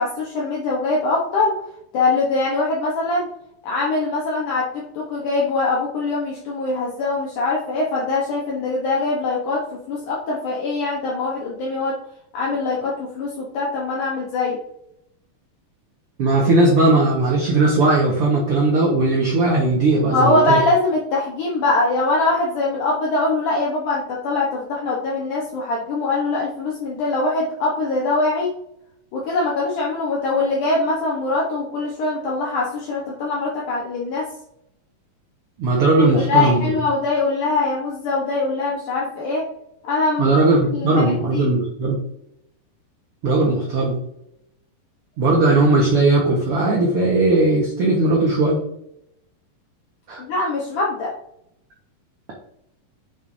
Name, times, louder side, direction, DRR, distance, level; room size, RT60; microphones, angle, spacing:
voice 1, 0.0-1.6 1.9-3.3 3.6-4.7 4.9-12.0 12.3-14.6 20.1-28.5 29.1-34.3 36.1-39.4 39.8-40.4 40.7-41.5 50.2-51.1, left 3 dB, 65° left, -3 dB, 2.4 m, -22 dB
voice 2, 16.2-20.6 35.6-36.7 40.2-42.0 43.2-44.0 45.2-48.6 50.1-50.2, right 2 dB, 60° right, -3 dB, 1.5 m, -18 dB
8.2 x 6.0 x 2.7 m, 0.77 s
omnidirectional pair, 4.3 m